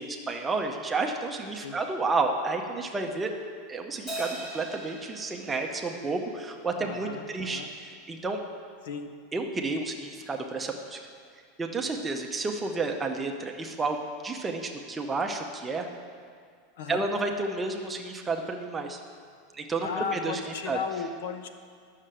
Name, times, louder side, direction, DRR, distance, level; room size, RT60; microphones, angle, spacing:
voice 1, 0.0-3.3 3.7-8.4 9.3-11.0 11.6-15.9 16.9-19.0 19.5-20.4 20.7-20.8, right 3 dB, 10° right, 2 dB, 0.7 m, -31 dB
Crash cymbal, 4.1-6.8, right 1 dB, 25° left, 2.4 m, -40 dB
voice 2, 6.8-7.7 8.8-9.1 16.8-17.0 19.8-21.5, left 6 dB, 70° left, 7 dB, 0.9 m, -35 dB
11.5 x 6.5 x 7.6 m, 2.1 s
supercardioid pair, 175°, 0 cm